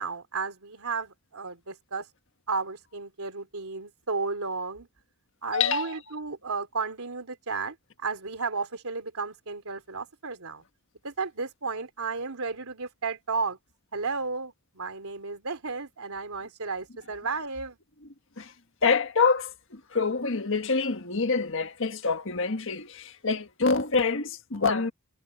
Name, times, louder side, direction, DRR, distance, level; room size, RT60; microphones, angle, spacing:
voice 1, 0.0-2.1 2.5-4.9 5.4-10.6 11.0-13.6 13.9-17.8, right 4 dB, 90° right, 3.1 m, -33 dB
voice 2, 5.5-6.0 18.4-18.5 18.8-24.9, left 4 dB, 60° left, 1.6 m, -26 dB
head